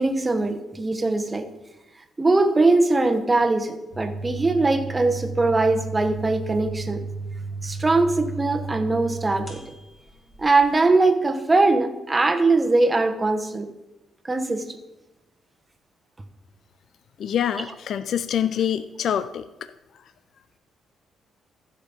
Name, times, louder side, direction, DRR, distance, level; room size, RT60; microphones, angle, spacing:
voice 1, 0.0-1.5 2.2-7.0 7.6-9.6 10.4-13.7 14.2-14.8 17.6-17.7, right 3 dB, 20° right, 7 dB, 1.1 m, -21 dB
sound 1, 3.9-11.0, right 3 dB, 20° left, 3.2 m, -34 dB
voice 2, 17.2-19.4, left 9 dB, 65° left, 12 dB, 0.4 m, -25 dB
15.0 x 5.2 x 5.4 m, 1.0 s
cardioid pair, 90°, 0 cm